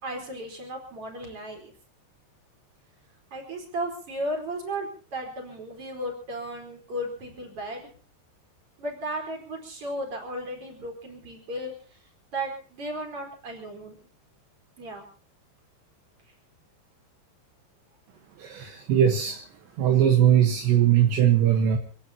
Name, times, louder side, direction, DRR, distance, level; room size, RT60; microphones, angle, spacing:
voice 1, 0.0-1.7 3.3-7.9 8.8-11.7 12.3-14.0 14.8-15.0, right 1 dB, 30° right, 2 dB, 4.9 m, -35 dB
voice 2, 18.4-19.4 19.8-21.8, right 10 dB, 75° right, 3 dB, 3.5 m, -20 dB
26.5 x 17.0 x 2.9 m, 0.40 s
omnidirectional pair, 5.4 m